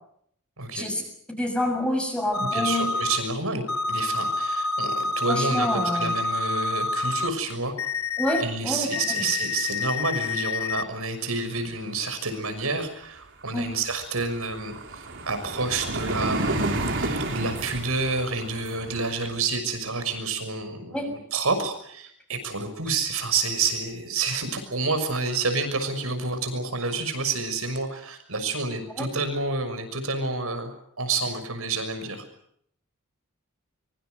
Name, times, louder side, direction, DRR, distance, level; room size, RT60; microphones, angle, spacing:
voice 1, 0.6-0.9 2.5-7.7 8.4-32.2, right 3 dB, 75° right, 9 dB, 6.2 m, -29 dB
voice 2, 1.3-2.8 5.3-6.1 8.2-9.3 13.5-13.7 20.9-21.1 29.0-29.1, left 1 dB, 5° left, 3 dB, 6.7 m, -27 dB
sound 1, 2.3-3.2 3.7-7.3 7.8-8.4 8.9-10.8, left 3 dB, 75° left, 1.5 m, -28 dB
sound 2, 13.0-13.1 13.4-19.1, right 2 dB, 60° right, 4.0 m, -31 dB
24.5 x 24.0 x 8.0 m, 0.70 s
head